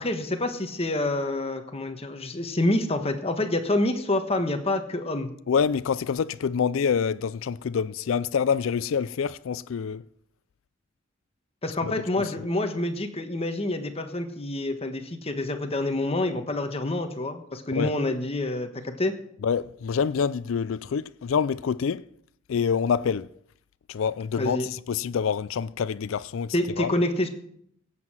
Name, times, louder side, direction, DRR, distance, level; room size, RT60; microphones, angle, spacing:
voice 1, 0.0-5.3 11.6-19.1 24.4-24.7 26.5-27.3, left 1 dB, 30° left, 1.4 m, -27 dB
voice 2, 5.5-10.0 11.8-11.9 17.7-17.9 19.4-22.1 22.5-23.3 23.9-26.9, left 6 dB, 80° left, 0.4 m, -26 dB
17.0 x 7.6 x 6.2 m
head